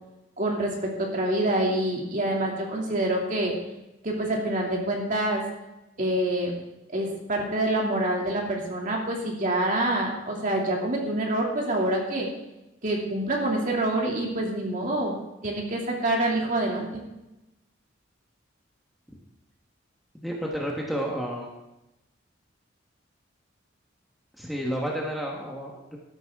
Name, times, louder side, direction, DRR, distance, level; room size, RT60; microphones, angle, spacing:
voice 1, 0.4-3.5 4.0-5.4 6.0-6.5 6.9-12.3 12.8-15.2 15.4-17.0, right 1 dB, 40° right, -1 dB, 2.6 m, -26 dB
voice 2, 20.2-21.5 24.4-26.0, equal, ahead, -2 dB, 1.5 m, -31 dB
13.0 x 11.5 x 3.7 m, 0.95 s
head